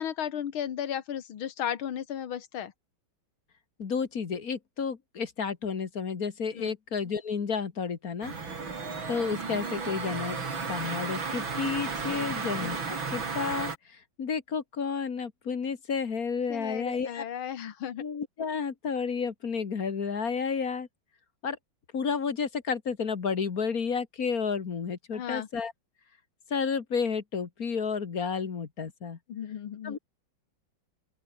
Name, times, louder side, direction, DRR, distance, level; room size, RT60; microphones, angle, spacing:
voice 1, 0.0-2.7 6.5-6.8 12.1-12.4 16.5-18.0 25.1-25.5 29.3-30.0, left 9 dB, 85° left, 2.3 m, -35 dB
voice 2, 3.8-8.3 9.1-10.4 10.7-17.2 18.0-20.9 21.4-21.6 21.9-25.7 26.5-29.2 29.8-30.0, left 5 dB, 45° left, 2.0 m, -31 dB
sound 1, 8.2-13.8, right 4 dB, 75° right, 4.3 m, -34 dB
open air
omnidirectional pair, 2.2 m